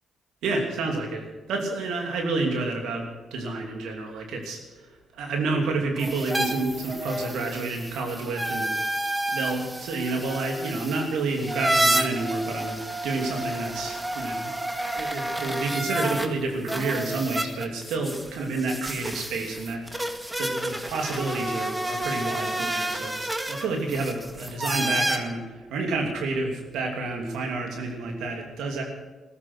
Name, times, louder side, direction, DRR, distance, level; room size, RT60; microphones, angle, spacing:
voice 1, 0.4-8.8 9.3-14.5 14.9-19.9 20.4-28.8, right 3 dB, 75° right, 2 dB, 2.9 m, -29 dB
sound 1, 6.0-16.3 16.7-25.2, right 1 dB, 15° right, 2.0 m, -30 dB
15.5 x 14.0 x 6.4 m, 1.2 s
hypercardioid pair, 45°, 0 cm